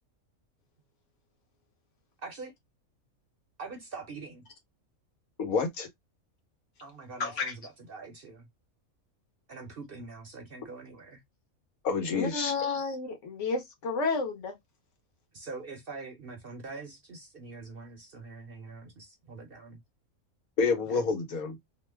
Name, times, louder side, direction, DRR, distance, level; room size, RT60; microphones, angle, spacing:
voice 1, 2.2-2.5 3.6-4.5 6.8-8.5 9.5-11.2 15.3-19.8 20.9-21.0, right 3 dB, 50° right, 0.7 m, -44 dB
voice 2, 5.4-5.9 11.8-12.5 20.6-21.6, left 4 dB, 85° left, 1.4 m, -28 dB
voice 3, 7.2-7.5 12.1-14.6, left 4 dB, 60° left, 1.3 m, -31 dB
2.9 x 2.1 x 3.3 m
omnidirectional pair, 1.5 m